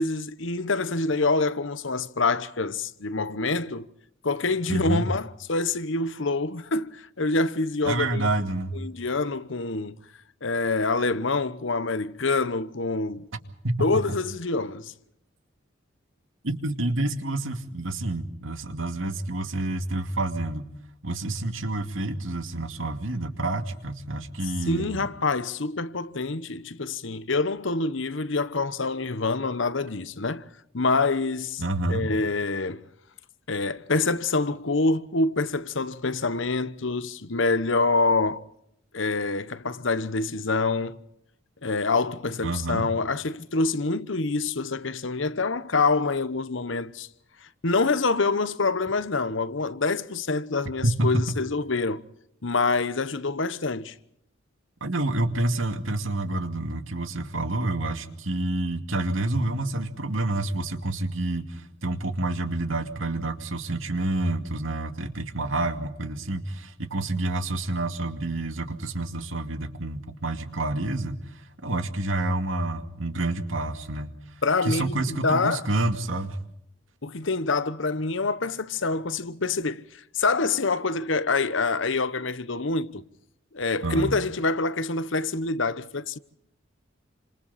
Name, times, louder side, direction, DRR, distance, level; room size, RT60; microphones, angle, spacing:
voice 1, 0.0-3.9 4.2-8.3 8.7-10.0 10.4-13.3 13.8-14.9 24.6-30.5 30.7-31.6 31.9-32.9 33.5-38.4 38.9-41.0 41.6-47.1 47.4-52.0 52.4-54.0 74.4-75.7 77.0-83.0 83.5-86.2, left 3 dB, 70° left, 1.1 m, -26 dB
voice 2, 4.7-5.1 7.8-8.8 13.6-13.8 16.4-20.7 21.0-25.1 31.6-32.1 42.4-42.9 50.8-51.3 54.8-71.2 71.6-74.2 74.6-76.4 83.8-84.1, right 2 dB, 75° right, 2.3 m, -28 dB
29.0 x 26.5 x 4.2 m
head